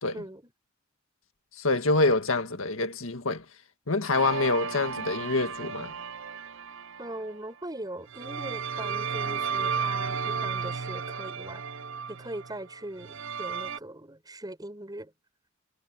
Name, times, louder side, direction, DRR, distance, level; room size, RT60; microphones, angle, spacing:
voice 1, 0.1-0.5 7.0-11.6 12.1-15.1, right 1 dB, 20° right, 7.5 m, -40 dB
voice 2, 1.6-3.5 3.9-5.9, left 3 dB, 80° left, 1.9 m, -26 dB
sound 1, 4.1-7.5 8.1-13.8, right 6 dB, 65° right, 0.7 m, -33 dB
head